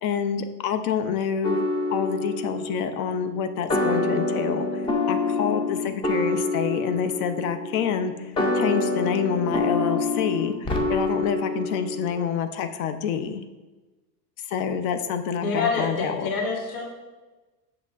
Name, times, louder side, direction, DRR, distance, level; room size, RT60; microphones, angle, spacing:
voice 1, 0.0-1.6 1.9-13.4 14.5-16.3, left 7 dB, 75° left, 8 dB, 0.6 m, -27 dB
sound 1, 1.4-12.1, left 2 dB, 15° left, 0.3 m, -27 dB
voice 2, 15.4-16.8, left 4 dB, 50° left, -2 dB, 1.5 m, -26 dB
6.5 x 6.0 x 2.4 m, 1.2 s
supercardioid pair, 120°, 44 cm